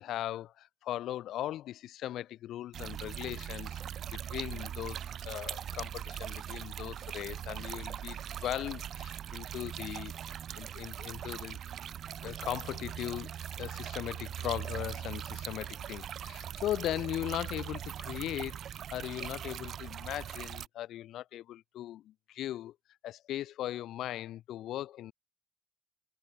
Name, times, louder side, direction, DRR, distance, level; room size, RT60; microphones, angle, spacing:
voice 1, 0.0-3.8 4.1-11.6 12.2-22.8 23.0-25.1, left 13 dB, 80° left, 0.5 m, -39 dB
sound 1, 2.7-20.7, right 9 dB, 65° right, 0.4 m, -41 dB
cardioid pair, 90°, 0 cm